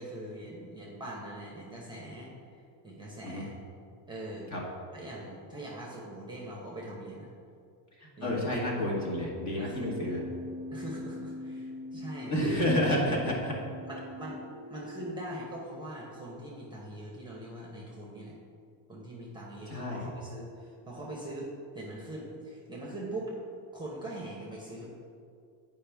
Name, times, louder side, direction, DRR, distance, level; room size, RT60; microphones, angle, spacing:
voice 1, 0.0-3.6 4.1-4.5 4.9-7.3 8.2-8.7 9.6-10.2 10.7-12.7 13.9-14.4 14.7-18.3 18.9-23.3 23.7-24.9, right 1 dB, 10° right, -3 dB, 0.9 m, -42 dB
voice 2, 8.0-10.2 12.3-13.5 19.7-20.1, left 1 dB, 35° left, -3 dB, 1.6 m, -30 dB
Keyboard (musical), 9.6-15.5, left 1 dB, 45° right, 0.5 m, -42 dB
8.6 x 5.2 x 3.5 m, 2.4 s
cardioid pair, 140°, 46 cm